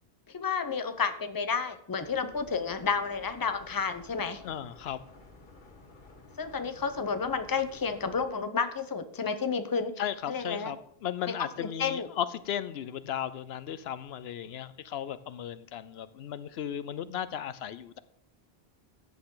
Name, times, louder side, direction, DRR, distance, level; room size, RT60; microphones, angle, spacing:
voice 1, 0.3-4.4 6.4-9.9 10.3-10.7 11.3-12.1, left 5 dB, 20° left, 10 dB, 0.7 m, -31 dB
sound 1, 2.0-8.2, left 2 dB, 50° left, 1.7 m, -53 dB
voice 2, 4.4-5.0 10.0-18.0, left 10 dB, 75° left, 15 dB, 0.8 m, -36 dB
14.5 x 9.3 x 3.8 m, 0.71 s
omnidirectional pair, 1.1 m